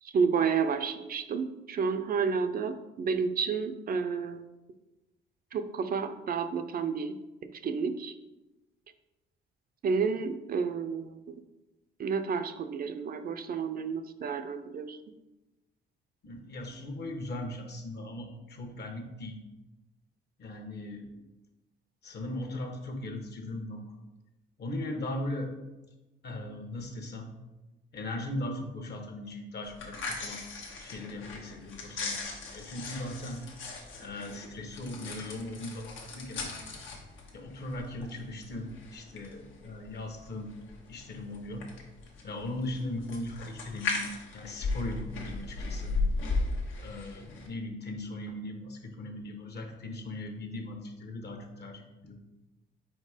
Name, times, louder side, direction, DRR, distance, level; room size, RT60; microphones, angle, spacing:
voice 1, 0.0-4.5 5.5-7.2 7.4-8.1 9.8-11.4 12.0-15.0, right 5 dB, 50° right, 9 dB, 0.5 m, -30 dB
voice 2, 16.2-19.4 20.4-21.1 22.0-24.0 24.6-25.5 26.2-27.3 27.9-30.4 30.8-33.4 34.0-36.6 37.3-40.5 40.9-41.6 42.2-46.0 46.8-52.2, left 1 dB, 55° left, 4 dB, 1.2 m, -38 dB
sound 1, 29.6-47.5, left 3 dB, 80° left, 1.2 m, -37 dB
4.4 x 4.4 x 5.0 m, 1.1 s
cardioid pair, 90°, 20 cm